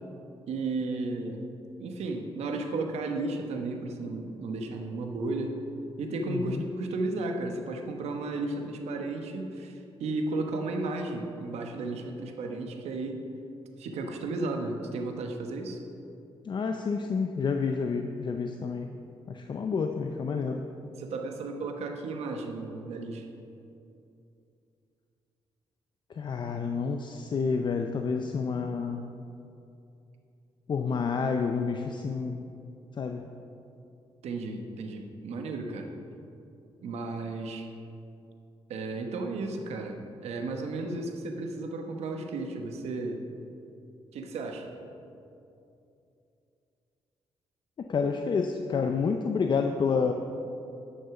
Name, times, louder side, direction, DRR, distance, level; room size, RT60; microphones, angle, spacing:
voice 1, 0.5-1.4 1.8-5.6 6.0-13.2 13.8-15.8 21.0-23.3 34.2-35.9 36.8-37.7 38.7-43.2 44.1-44.8, right 3 dB, 85° right, 4 dB, 1.1 m, -34 dB
voice 2, 6.2-6.6 16.4-19.0 19.3-20.7 26.1-29.1 30.7-32.5 32.9-33.3 47.8-50.1, left 5 dB, 45° left, 5 dB, 0.6 m, -29 dB
11.0 x 6.5 x 5.9 m, 2.7 s
cardioid pair, 90°, 11 cm